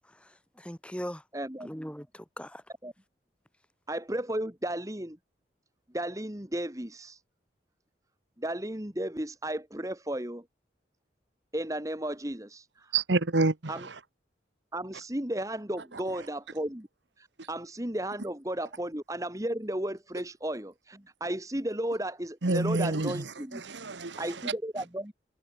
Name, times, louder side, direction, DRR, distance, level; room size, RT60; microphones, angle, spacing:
voice 1, 0.0-1.2 1.6-2.6, equal, 5° left, 3.3 m, -40 dB
voice 2, 1.3-1.7 2.8-2.9 3.9-5.2 5.9-7.2 8.4-10.4 11.5-13.0 13.7-13.9 14.7-16.9 17.2-23.6 24.2-25.1, right 1 dB, 20° right, 1.7 m, -34 dB
voice 3, 12.9-13.5 22.4-23.2 23.6-24.2, right 3 dB, 80° right, 1.3 m, -27 dB
head